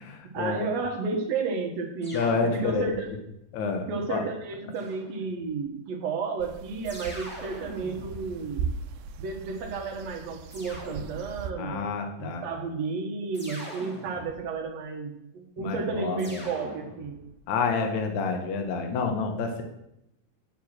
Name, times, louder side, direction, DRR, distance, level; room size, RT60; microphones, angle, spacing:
voice 1, 0.3-2.3 2.5-3.2 3.9-8.7 9.2-11.8 12.2-17.2, right 4 dB, 60° right, 2 dB, 2.2 m, -32 dB
sound 1, 2.0-3.2 4.7-5.6 6.8-9.2 10.5-11.6 13.3-14.7 16.2-17.4, right 1 dB, 5° left, 1.0 m, -44 dB
voice 2, 2.1-3.0 3.5-4.2 11.6-12.4 15.6-16.4 17.5-19.6, left 4 dB, 65° left, 4 dB, 2.3 m, -28 dB
sound 2, 6.4-11.5, right 6 dB, 90° right, 2.3 m, -38 dB
9.7 x 4.7 x 7.5 m, 0.82 s
omnidirectional pair, 4.0 m